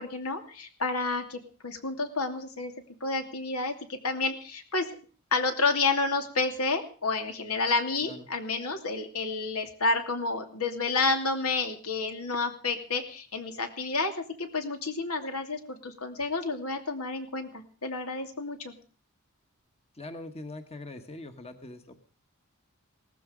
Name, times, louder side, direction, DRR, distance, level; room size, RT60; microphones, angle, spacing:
voice 1, 0.0-2.7 3.0-4.9 5.3-18.7, left 3 dB, 85° left, 6 dB, 2.7 m, -30 dB
voice 2, 19.9-22.0, left 2 dB, 30° left, 8 dB, 1.4 m, -42 dB
18.5 x 15.0 x 5.1 m, 0.39 s
head